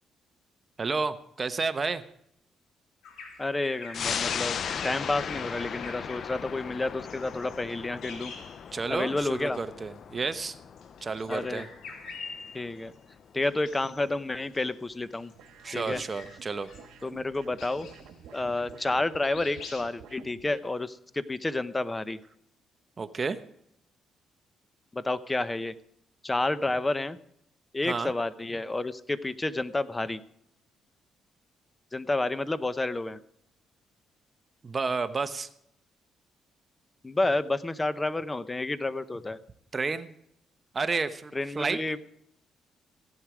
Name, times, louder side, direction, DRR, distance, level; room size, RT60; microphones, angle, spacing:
voice 1, 0.8-2.0 8.7-10.6 11.0-11.7 15.6-16.7 23.0-23.4 27.8-28.1 34.6-35.5 39.7-40.1 40.7-41.8, right 4 dB, 35° right, 11 dB, 0.9 m, -31 dB
Bird vocalization bird call bird song, 3.0-9.1 9.4-9.6 10.7-12.9 13.4-14.1 14.4-18.9 19.2-19.8, left 4 dB, 80° left, 3.3 m, -46 dB
voice 2, 3.4-4.6 4.8-8.3 8.9-9.6 11.3-11.6 12.5-12.9 13.3-15.3 15.7-16.0 17.0-17.9 18.3-22.2 24.9-25.7 26.2-27.2 27.7-30.2 31.9-33.2 37.0-39.4 41.3-42.0, left 2 dB, 20° left, 14 dB, 0.9 m, -30 dB
sound 1, 3.9-14.9 15.3-15.4, left 7 dB, 55° left, 0.5 m, -38 dB
sound 2, 15.4-20.7, right 6 dB, 80° right, 1.6 m, -51 dB
16.0 x 11.0 x 5.0 m, 0.73 s
cardioid pair, 90°, 0 cm